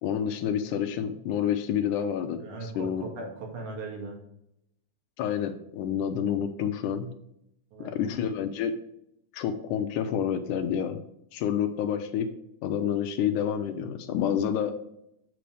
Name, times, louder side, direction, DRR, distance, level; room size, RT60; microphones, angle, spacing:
voice 1, 0.0-3.0 5.2-7.1 7.8-8.8 9.3-11.0 11.3-12.3 12.6-14.7, left 8 dB, 85° left, 7 dB, 2.3 m, -28 dB
voice 2, 2.4-4.2 7.7-8.1, right 2 dB, 75° right, 0 dB, 3.4 m, -38 dB
7.6 x 6.9 x 3.3 m, 0.76 s
omnidirectional pair, 3.5 m